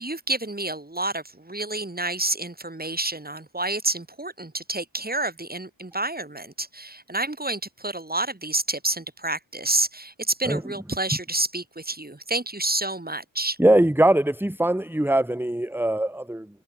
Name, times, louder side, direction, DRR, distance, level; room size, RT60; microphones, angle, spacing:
voice 1, 0.0-13.6, right 2 dB, 20° right, 1.9 m, -29 dB
voice 2, 13.6-16.5, right 1 dB, 5° right, 1.4 m, -21 dB
wide cardioid pair, 60°, 45 cm